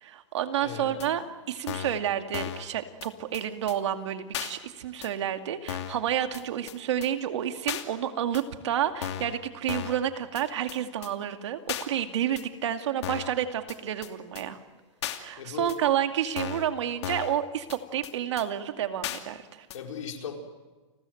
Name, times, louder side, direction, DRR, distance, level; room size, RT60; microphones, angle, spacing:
voice 1, 0.0-14.6 15.1-19.7, right 10 dB, 65° right, 7 dB, 2.3 m, -30 dB
voice 2, 0.6-1.1 15.4-15.8 19.7-20.4, left 7 dB, 85° left, 3 dB, 4.9 m, -37 dB
sound 1, 1.0-1.1 1.7-2.0 2.3-2.7 3.0-3.1 3.3-3.4 3.7-3.8 4.3-4.5 5.0-5.1 5.7-6.0 6.3-6.4 6.7-6.8 7.0-7.1 7.7-7.8 8.3-8.4 9.0-9.3 9.7-10.0 10.3-10.4 10.7-10.8 11.0-11.1 11.7-11.9 12.4-12.5 13.0-13.3 13.7-13.8 14.0-14.1 14.4-14.5 15.0-15.2 15.7-15.8 16.4-16.7 17.0-17.4 17.7-17.8 18.0-18.1 18.4-18.5 19.0-19.2 19.7-19.8, left 10 dB, 60° left, 2.6 m, -35 dB
29.5 x 21.0 x 7.9 m, 1.3 s
supercardioid pair, 170°, 16 cm